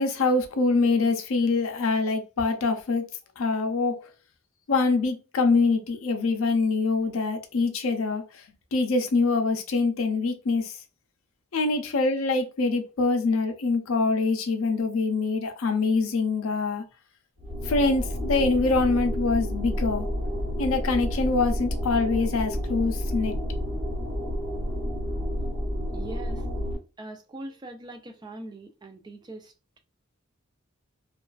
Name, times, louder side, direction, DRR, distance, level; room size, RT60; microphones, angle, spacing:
voice 1, 0.0-3.0 3.4-4.1 4.7-8.4 8.7-10.8 11.5-16.8 17.6-20.1 20.6-23.3, left 3 dB, 70° left, 0.5 m, -24 dB
sound 1, 17.4-26.8, equal, 70° right, 1.4 m, -30 dB
voice 2, 25.9-26.5 27.0-29.8, right 2 dB, 20° right, 0.3 m, -42 dB
2.3 x 2.3 x 2.3 m
head